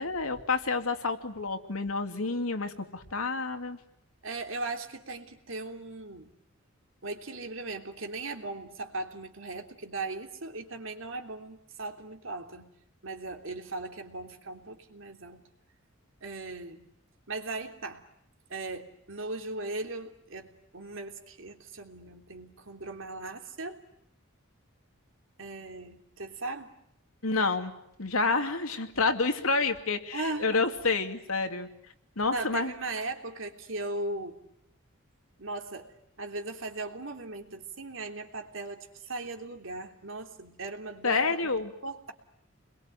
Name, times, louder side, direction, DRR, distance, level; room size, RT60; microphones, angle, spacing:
voice 1, 0.0-3.8 27.2-27.7 28.0-31.7 32.2-32.7 41.0-41.7, left 4 dB, 85° left, 6 dB, 2.7 m, -29 dB
voice 2, 4.2-6.3 7.0-12.7 13.0-15.4 16.2-16.9 17.3-18.0 18.5-23.8 25.4-26.7 30.1-30.6 32.3-34.4 35.4-35.9 36.2-41.5 41.8-42.1, right 2 dB, 65° right, 5 dB, 3.3 m, -38 dB
29.5 x 22.0 x 9.2 m, 0.77 s
head